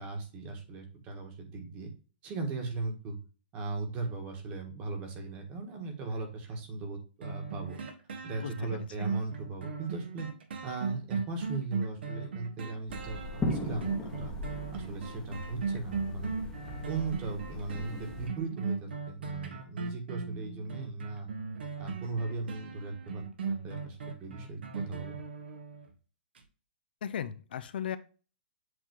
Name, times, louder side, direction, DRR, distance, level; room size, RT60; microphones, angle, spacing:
voice 1, 0.0-1.9 2.2-3.2 3.5-7.8 8.2-10.3 10.6-14.3 14.7-16.3 16.9-21.3 21.8-25.2, right 3 dB, 25° right, 4 dB, 1.4 m, -38 dB
sound 1, 7.2-25.9 26.4-26.5, right 5 dB, 85° right, 1.4 m, -38 dB
voice 2, 8.4-9.1 27.0-28.0, left 8 dB, 70° left, 13 dB, 0.6 m, -37 dB
sound 2, 12.9-18.3, left 2 dB, 10° left, 1.0 m, -38 dB
7.9 x 3.0 x 4.5 m, 0.36 s
hypercardioid pair, 160°, 6 cm